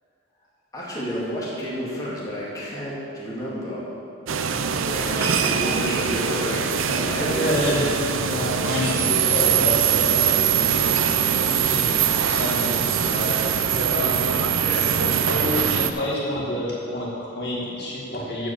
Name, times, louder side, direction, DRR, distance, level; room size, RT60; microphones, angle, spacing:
voice 1, 0.7-3.9 4.7-7.6 8.2-8.3 14.5-15.0, equal, 20° left, -7 dB, 2.3 m, -31 dB
sound 1, 4.3-15.9, right 7 dB, 90° right, 0.6 m, -22 dB
voice 2, 5.4-5.7 7.2-14.5 15.0-18.5, left 1 dB, 55° left, -5 dB, 2.1 m, -29 dB
14.0 x 5.0 x 7.2 m, 2.6 s
head